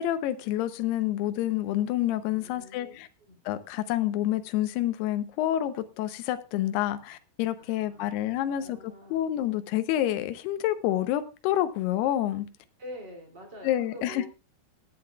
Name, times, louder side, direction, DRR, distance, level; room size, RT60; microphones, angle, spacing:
voice 1, 0.0-3.1 3.5-8.8 9.1-12.5 13.6-14.3, left 13 dB, 80° left, 11 dB, 2.8 m, -28 dB
voice 2, 2.3-2.9 3.2-3.4 7.6-9.3 12.8-14.3, equal, 30° right, 1 dB, 2.8 m, -46 dB
23.5 x 8.7 x 2.3 m, 0.30 s
omnidirectional pair, 4.7 m